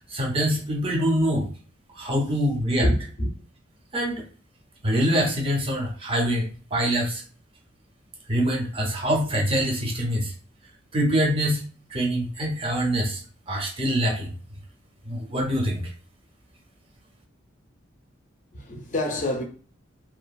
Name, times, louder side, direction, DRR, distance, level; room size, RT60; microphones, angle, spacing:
voice 1, 0.1-1.5 1.9-2.9 3.9-4.2 4.8-7.2 8.3-10.3 10.9-11.6 11.9-13.2 13.5-14.3 15.0-15.9, equal, 25° right, 0.6 m, -24 dB
voice 2, 2.8-3.3 18.5-19.4, left 1 dB, 40° left, 0.6 m, -26 dB
2.8 x 2.4 x 2.3 m
head